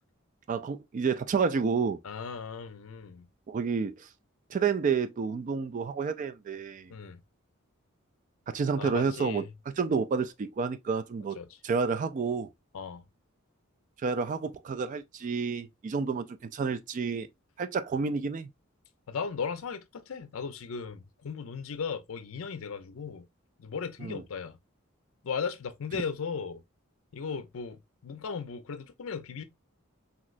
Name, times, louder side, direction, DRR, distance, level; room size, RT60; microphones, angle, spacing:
voice 1, 0.5-2.0 3.5-4.1 4.5-6.9 8.5-11.4 11.6-12.5 14.0-17.3 17.6-18.5 24.0-24.2, right 5 dB, 35° right, 0.3 m, -30 dB
voice 2, 2.0-3.3 6.9-7.2 8.8-9.5 11.4-11.5 12.7-13.0 19.1-23.2 23.6-24.6 25.2-26.6 27.1-29.4, left 5 dB, 70° left, 0.5 m, -36 dB
3.1 x 2.8 x 2.4 m
head